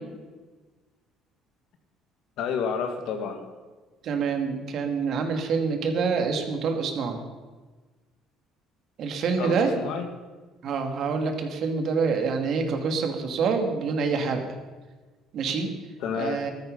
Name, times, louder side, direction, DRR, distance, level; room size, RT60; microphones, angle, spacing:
voice 1, 2.4-3.4 9.4-10.1 16.0-16.4, left 6 dB, 70° left, 6 dB, 2.2 m, -30 dB
voice 2, 4.0-7.2 9.0-9.7 10.6-14.4 15.3-15.7 16.1-16.5, right 5 dB, 55° right, 5 dB, 2.5 m, -26 dB
14.5 x 13.5 x 5.6 m, 1.3 s
cardioid pair, 110°, 0 cm